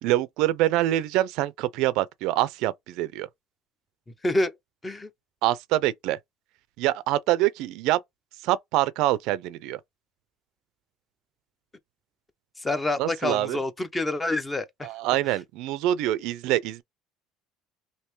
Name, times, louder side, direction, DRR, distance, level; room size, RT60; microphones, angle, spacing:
voice 1, 0.0-3.3 5.4-6.2 6.8-8.0 8.4-9.8 13.0-13.6 14.8-16.8, right 15 dB, 70° right, 0.4 m, -25 dB
voice 2, 4.2-4.5 4.8-5.1 12.6-14.9 15.3-15.4, left 2 dB, 15° left, 0.5 m, -27 dB
3.2 x 2.6 x 3.0 m
cardioid pair, 135°, 0 cm